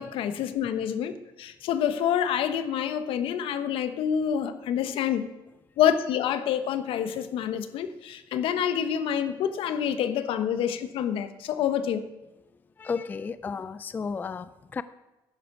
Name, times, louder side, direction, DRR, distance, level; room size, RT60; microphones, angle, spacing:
voice 1, 0.0-5.3 5.8-12.0, left 9 dB, 75° left, 1.1 m, -27 dB
voice 2, 12.8-14.8, left 5 dB, 20° left, 0.4 m, -33 dB
11.0 x 9.9 x 6.1 m
cardioid pair, 155°, 9 cm